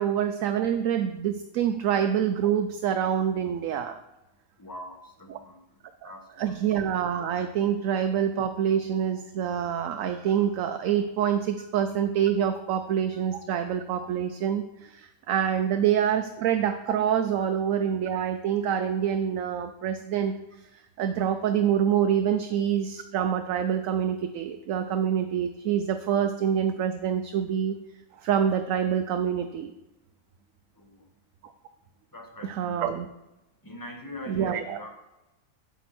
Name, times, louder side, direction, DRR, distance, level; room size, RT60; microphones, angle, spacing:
voice 1, 0.0-4.0 5.3-5.4 6.0-6.1 6.4-27.8 28.1-29.7 32.4-33.1 34.3-34.8, right 9 dB, 65° right, 8 dB, 0.9 m, -26 dB
voice 2, 4.6-5.6 6.0-6.6 30.8-31.0 32.1-32.9 33.6-34.9, left 1 dB, 15° left, 2 dB, 1.3 m, -43 dB
8.9 x 8.1 x 4.3 m, 0.96 s
omnidirectional pair, 1.6 m